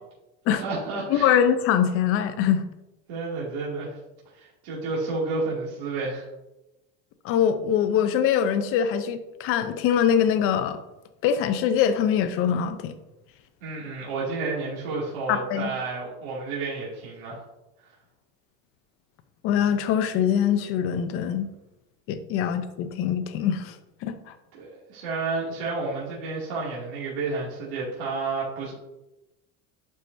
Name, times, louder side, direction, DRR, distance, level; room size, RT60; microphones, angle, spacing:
voice 1, 0.5-1.4 3.1-4.0 4.3-6.3 13.6-17.4 24.5-28.7, right 3 dB, 65° right, -6 dB, 2.5 m, -31 dB
voice 2, 1.1-2.6 7.2-10.8 11.2-12.9 15.3-15.7 19.4-21.5 22.1-23.8 24.0-24.3, left 8 dB, 40° left, 10 dB, 0.6 m, -23 dB
11.0 x 4.8 x 2.7 m, 0.97 s
cardioid pair, 165°, 36 cm